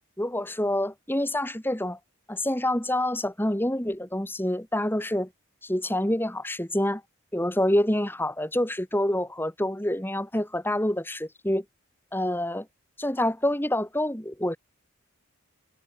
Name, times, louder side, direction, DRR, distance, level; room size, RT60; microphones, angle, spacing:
voice 1, 0.2-2.0 2.3-5.3 5.6-7.0 7.3-11.6 12.1-12.7 13.0-14.6, left 1 dB, 10° left, 1.8 m, -27 dB
head